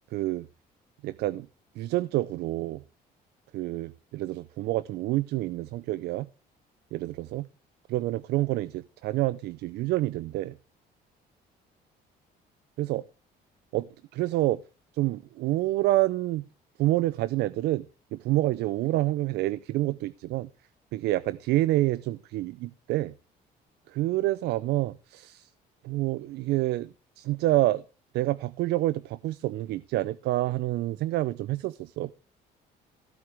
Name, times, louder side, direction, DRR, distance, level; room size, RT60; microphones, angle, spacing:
voice 1, 0.1-0.5 1.0-1.5 1.8-2.8 3.5-6.3 6.9-7.5 7.9-10.6 12.8-13.0 13.7-14.6 14.9-16.4 16.8-17.9 18.1-20.5 20.9-23.1 23.9-25.5 25.8-27.8 28.1-32.1, right 16 dB, 75° right, 0.5 m, -28 dB
15.5 x 8.6 x 3.4 m
cardioid pair, 110°, 17 cm